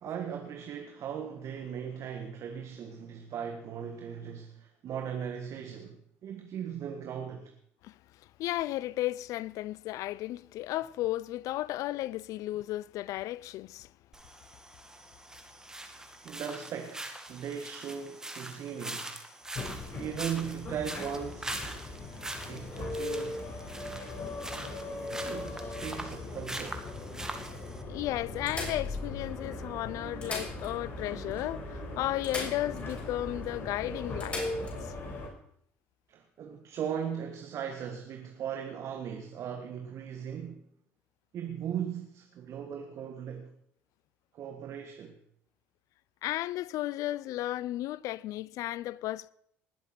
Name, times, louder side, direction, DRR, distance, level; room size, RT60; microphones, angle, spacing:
voice 1, 0.0-7.5 16.2-19.2 19.9-21.8 22.4-23.4 25.2-26.8 36.1-40.7 41.3-43.5 44.3-45.2, right 8 dB, 55° right, 1.6 m, -38 dB
voice 2, 8.4-13.9 27.9-34.4 46.2-49.3, left 15 dB, 65° left, 0.5 m, -34 dB
sound 1, 14.1-27.8, right 1 dB, 10° right, 2.1 m, -43 dB
sound 2, 19.5-35.3, left 2 dB, 40° left, 4.6 m, -39 dB
sound 3, 24.9-26.6 27.2-27.3 27.6-27.7 28.5-29.5 30.0-31.1 31.3-31.4 32.2-33.1 33.4-33.5 34.2-34.8 36.7-36.9, left 2 dB, 20° left, 6.8 m, -41 dB
19.5 x 7.4 x 5.9 m
supercardioid pair, 75°, 6 cm